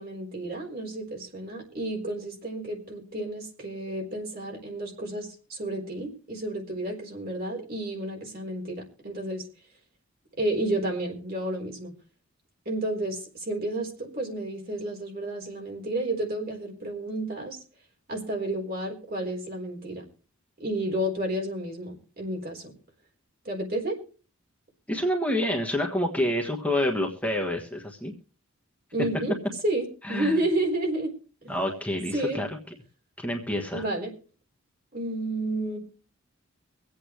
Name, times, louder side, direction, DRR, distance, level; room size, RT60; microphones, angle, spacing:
voice 1, 0.0-9.4 10.4-11.9 12.7-17.6 18.1-20.0 20.6-22.7 23.4-24.0 28.9-29.3 29.6-31.1 31.4-31.5 32.1-32.4 33.7-34.1 34.9-35.8, right 1 dB, 45° right, 1 dB, 4.0 m, -31 dB
voice 2, 24.9-28.1 30.0-30.4 31.5-32.5 33.2-33.8, left 1 dB, 5° left, 1 dB, 1.4 m, -28 dB
24.5 x 8.5 x 3.1 m, 0.37 s
head